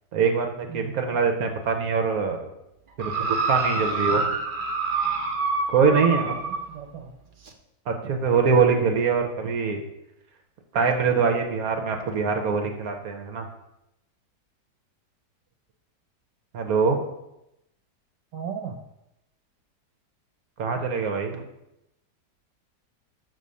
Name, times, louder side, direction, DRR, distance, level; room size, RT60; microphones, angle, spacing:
voice 1, 0.1-2.4 3.0-4.3 5.7-6.4 7.9-9.8 10.7-13.5 16.5-17.0 20.6-21.5, right 5 dB, 65° right, 5 dB, 1.2 m, -23 dB
voice 2, 0.7-1.2 6.4-7.1 18.3-18.8, right 7 dB, 80° right, 4 dB, 1.3 m, -36 dB
sound 1, 3.0-6.7 7.5-7.6, right 4 dB, 45° right, 0.6 m, -26 dB
6.8 x 4.2 x 6.3 m, 0.86 s
omnidirectional pair, 1.9 m